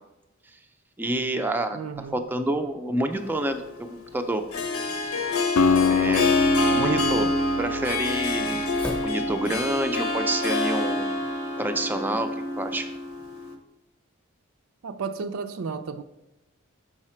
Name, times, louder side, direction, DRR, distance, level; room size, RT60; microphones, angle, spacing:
voice 1, 1.0-3.6 4.1-4.4 5.9-6.3 6.7-7.3 7.6-8.6 9.0-11.1 11.6-12.3 12.6-12.9, right 1 dB, 10° right, 0.4 m, -27 dB
voice 2, 1.7-2.1 6.8-7.3 14.8-16.0, right 5 dB, 85° right, 0.5 m, -33 dB
sound 1, 1.9-9.7, equal, 5° left, 0.7 m, -45 dB
Harp, 3.1-13.5, left 2 dB, 90° left, 0.8 m, -27 dB
Acoustic guitar, 5.6-9.7, left 5 dB, 65° left, 0.4 m, -26 dB
6.4 x 4.8 x 4.3 m
head